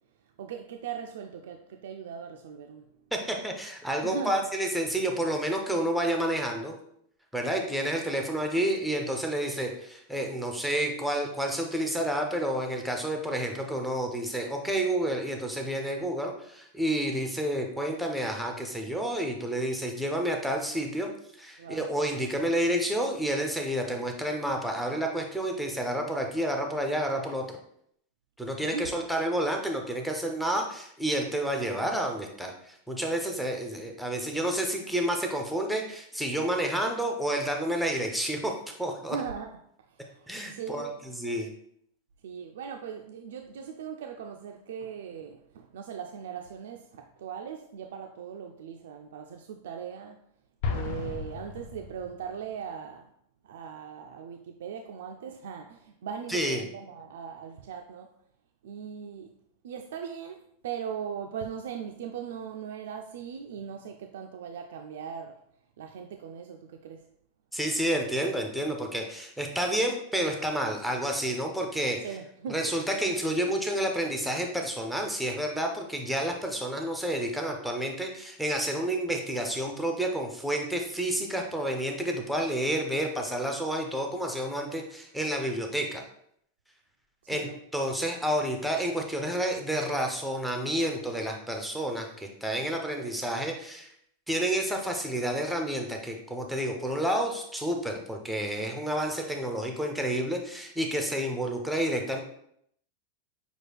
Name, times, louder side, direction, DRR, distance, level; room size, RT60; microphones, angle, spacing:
voice 1, 0.4-2.9 4.0-4.5 7.4-7.7 21.6-21.8 28.6-28.9 39.1-39.5 39.9-41.0 42.2-50.2 50.7-53.1 53.4-58.1 58.6-59.4 59.6-65.4 65.8-67.1 72.0-72.6 87.2-87.6, right 7 dB, 75° right, 4 dB, 0.4 m, -39 dB
voice 2, 3.1-6.7 7.3-21.1 21.4-27.6 28.4-38.5 38.8-39.2 40.3-41.5 56.3-56.6 67.5-72.0 72.5-86.0 87.3-93.9 94.3-102.2, right 1 dB, ahead, 2 dB, 0.4 m, -30 dB
Explosion, 50.6-52.4, left 5 dB, 45° left, 0.6 m, -34 dB
6.1 x 2.4 x 3.3 m, 0.70 s
supercardioid pair, 180°, 0 cm